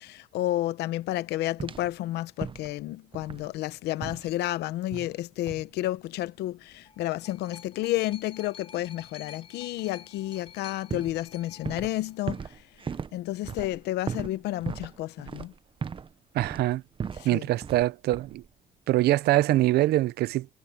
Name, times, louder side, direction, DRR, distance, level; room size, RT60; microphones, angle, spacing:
voice 1, 0.0-12.6 13.1-15.5 17.2-17.4, left 15 dB, 80° left, 0.8 m, -31 dB
sound 1, 1.6-2.0 2.4-2.8 3.1-3.6 4.0-4.3 4.9-5.2 5.5-5.7 10.4-10.5 10.9-12.0 12.3-16.1 16.4-17.3 17.6-17.9 18.1-18.5, right 6 dB, 30° right, 0.8 m, -37 dB
sound 2, 6.6-12.6 13.5-13.6, left 7 dB, 30° left, 3.9 m, -50 dB
voice 2, 16.3-16.8 17.2-18.4 18.9-20.5, right 16 dB, 70° right, 0.7 m, -23 dB
cardioid pair, 110°, 17 cm